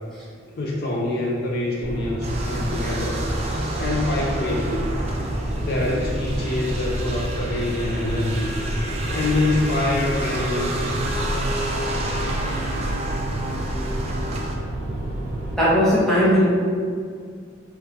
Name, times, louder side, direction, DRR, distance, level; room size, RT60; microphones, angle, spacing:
voice 1, 0.6-3.2 3.8-4.9 5.6-8.6 9.1-11.1, left 2 dB, 50° left, -2 dB, 0.4 m, -25 dB
sound 1, 1.8-15.6, right 1 dB, 70° right, 1.2 m, -28 dB
sound 2, 2.2-14.5, right 1 dB, 30° right, 0.5 m, -31 dB
voice 2, 15.6-16.4, equal, ahead, -9 dB, 1.1 m, -18 dB
4.2 x 3.8 x 2.8 m, 2.2 s
head